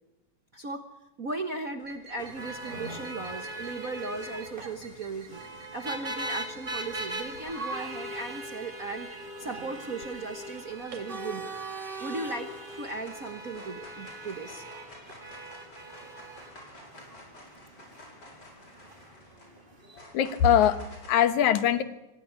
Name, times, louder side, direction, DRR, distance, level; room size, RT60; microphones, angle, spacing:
voice 1, 0.5-0.8 1.2-5.4 5.7-9.1 9.4-11.5 12.0-12.5 12.8-14.6, right 3 dB, 60° right, 6 dB, 0.8 m, -37 dB
sound 1, 1.8-11.1, right 3 dB, 85° right, 4.5 m, -49 dB
sound 2, 2.2-20.0, right 2 dB, 20° right, 2.0 m, -40 dB
sound 3, 11.7-12.1 12.4-21.2, left 1 dB, 35° left, 5.8 m, -51 dB
voice 2, 20.1-21.8, left 9 dB, 75° left, 10 dB, 2.7 m, -22 dB
25.5 x 16.0 x 9.6 m, 1.0 s
omnidirectional pair, 3.4 m